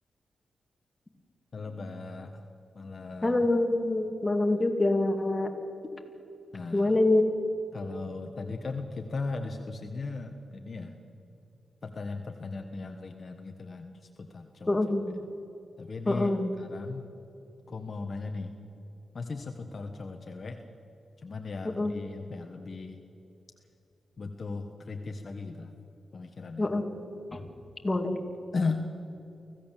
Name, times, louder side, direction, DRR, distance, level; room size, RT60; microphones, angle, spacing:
voice 1, 1.5-2.4 2.7-3.4 6.5-7.0 7.7-11.0 11.8-14.8 15.8-16.3 16.6-17.1 17.7-18.5 19.1-20.6 21.2-23.0 24.2-25.7 26.1-26.7 28.5-28.9, left 3 dB, 50° left, 4 dB, 1.4 m, -37 dB
voice 2, 3.2-5.5 6.7-7.3 14.7-15.1 16.1-16.5 21.8-21.9 26.6-26.8 27.3-27.4 27.8-28.2, left 2 dB, 20° left, 3 dB, 2.4 m, -25 dB
25.0 x 16.0 x 7.5 m, 2.8 s
cardioid pair, 95°, 0 cm